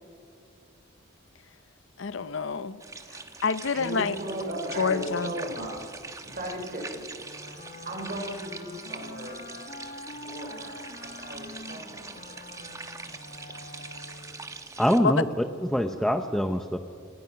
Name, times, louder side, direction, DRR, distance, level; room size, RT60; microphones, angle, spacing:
voice 1, 2.0-2.8 3.4-4.2 4.8-5.3 15.0-15.1, left 5 dB, 70° left, 14 dB, 0.7 m, -27 dB
sound 1, 2.8-15.0, right 3 dB, 15° right, 1.0 m, -43 dB
voice 2, 3.7-5.8 6.2-7.0 7.9-9.4 10.1-12.4, right 1 dB, 45° right, 1 dB, 5.4 m, -36 dB
Wind instrument woodwind instrument, 7.1-14.6, left 2 dB, 40° left, 1.9 m, -45 dB
voice 3, 14.8-16.8, equal, ahead, 6 dB, 0.6 m, -25 dB
26.0 x 18.5 x 5.8 m, 2.2 s
head